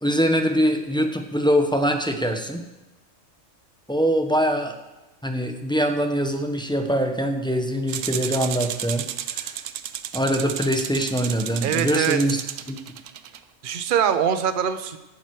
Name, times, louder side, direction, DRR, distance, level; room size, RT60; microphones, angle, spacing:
voice 1, 0.0-2.6 3.9-4.8 5.2-9.6 10.1-12.4 12.7-12.8, equal, 5° left, 4 dB, 0.9 m, -23 dB
sound 1, 7.9-13.4, right 10 dB, 75° right, 1.0 m, -32 dB
voice 2, 11.6-12.2 13.6-15.0, right 8 dB, 45° right, 10 dB, 0.9 m, -23 dB
17.0 x 9.2 x 4.7 m, 1.0 s
omnidirectional pair, 1.3 m